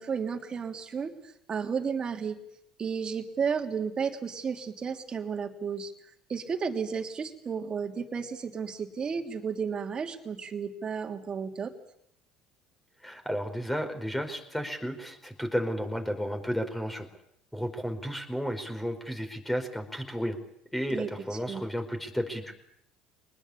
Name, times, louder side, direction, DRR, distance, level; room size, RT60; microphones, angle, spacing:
voice 1, 0.0-2.4 2.8-5.9 6.3-11.7 20.9-21.1 21.5-21.7, right 6 dB, 35° right, 5 dB, 3.1 m, -33 dB
voice 2, 13.0-17.1 17.5-20.4 20.7-22.5, equal, 5° left, 6 dB, 4.7 m, -32 dB
23.5 x 20.0 x 8.7 m, 0.73 s
hypercardioid pair, 70°, 2 cm